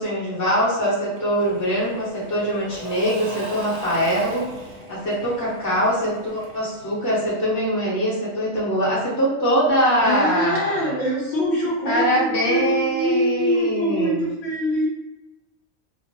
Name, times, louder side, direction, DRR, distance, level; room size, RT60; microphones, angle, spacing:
voice 1, 0.0-4.4 4.9-10.9 11.9-14.2, equal, 15° left, -8 dB, 0.7 m, -23 dB
Engine / Mechanisms / Drill, 1.1-7.8, equal, 65° right, 0.8 m, -38 dB
voice 2, 10.0-14.9, equal, 65° left, -5 dB, 1.1 m, -23 dB
2.4 x 2.0 x 2.9 m, 0.99 s
omnidirectional pair, 1.4 m